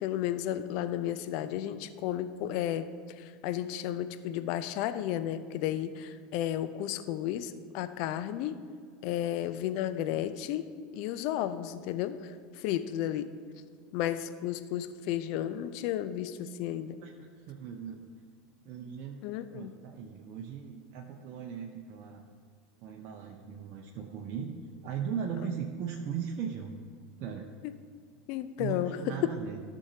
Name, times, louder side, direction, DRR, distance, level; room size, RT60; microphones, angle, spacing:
voice 1, 0.0-8.6 9.0-13.3 13.9-17.0 19.2-19.7 28.3-29.2, left 11 dB, 55° left, 11 dB, 0.5 m, -33 dB
voice 2, 17.0-18.0 18.6-19.2 19.5-22.2 22.8-24.5 24.8-26.7 27.2-27.5 28.6-29.6, right 7 dB, 50° right, 0 dB, 0.8 m, -38 dB
14.5 x 6.3 x 2.8 m, 2.1 s
figure-of-eight pair, 80°, 0 cm